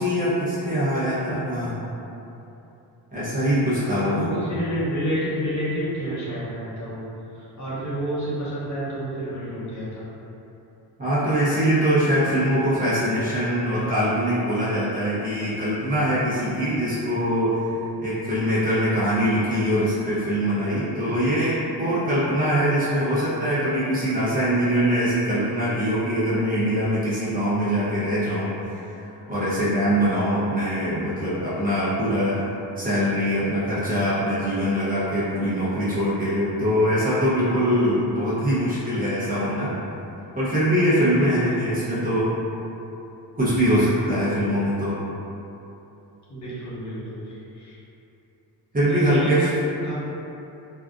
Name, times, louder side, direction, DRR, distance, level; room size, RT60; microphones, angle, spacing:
voice 1, 0.0-1.8 3.1-4.3 11.0-17.6 18.0-28.5 28.8-29.0 29.3-32.3 32.8-39.7 40.3-42.3 43.4-44.9 48.7-49.4, equal, 20° right, -12 dB, 0.8 m, -23 dB
voice 2, 3.8-7.1 7.3-10.1 41.2-41.7 46.3-47.8 48.9-49.9, equal, 40° left, -9 dB, 0.9 m, -30 dB
3.6 x 2.4 x 2.5 m, 2.9 s
cardioid pair, 125°, 42 cm